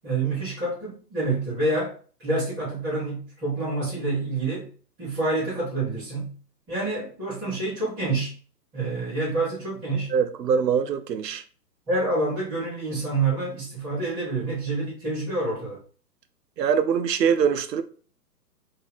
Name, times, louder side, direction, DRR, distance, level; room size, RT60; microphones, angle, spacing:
voice 1, 0.0-1.9 2.2-4.7 5.0-6.3 6.7-8.3 8.7-10.1 11.9-15.8, right 2 dB, 5° right, 0.5 m, -27 dB
voice 2, 10.1-11.4 16.6-17.8, right 7 dB, 75° right, 0.6 m, -23 dB
2.7 x 2.6 x 4.0 m
figure-of-eight pair, 130°, 49 cm